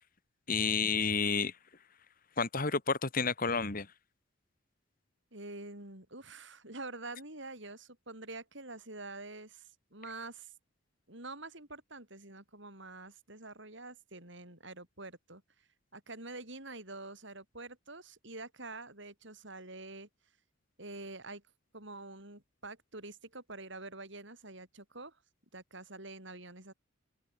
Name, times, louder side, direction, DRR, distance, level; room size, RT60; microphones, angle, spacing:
voice 1, 0.5-1.5 2.4-3.9, left 5 dB, 45° left, 1.8 m, -30 dB
voice 2, 5.3-10.5 11.1-15.4 15.9-20.1 20.8-21.4 21.7-25.2 25.5-26.7, right 2 dB, 60° right, 7.3 m, -46 dB
head